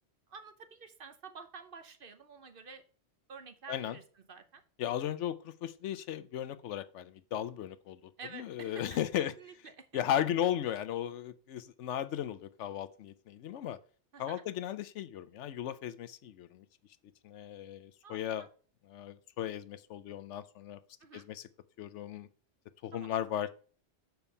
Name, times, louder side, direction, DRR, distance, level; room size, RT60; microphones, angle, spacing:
voice 1, 0.3-2.8 3.3-4.6 8.2-10.0 14.1-14.4 18.0-18.5 21.0-21.3 22.9-23.2, right 5 dB, 50° right, 8 dB, 1.0 m, -50 dB
voice 2, 4.8-8.0 8.3-9.3 9.9-13.8 14.2-16.6 17.2-18.5 18.9-20.8 21.1-21.4 21.8-22.3 22.8-23.6, left 10 dB, 90° left, 14 dB, 1.0 m, -36 dB
7.1 x 4.6 x 5.4 m, 0.41 s
omnidirectional pair, 1.2 m